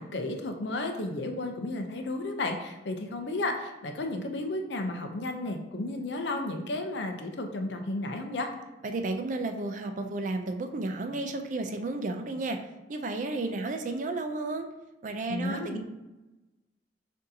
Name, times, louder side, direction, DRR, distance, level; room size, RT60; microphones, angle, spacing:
voice 1, 0.0-8.5 15.3-15.8, left 2 dB, 75° left, 4 dB, 0.6 m, -33 dB
voice 2, 8.8-12.6 12.9-14.7 15.0-15.8, right 2 dB, 45° right, 6 dB, 0.4 m, -32 dB
6.3 x 2.7 x 2.7 m, 1.1 s
head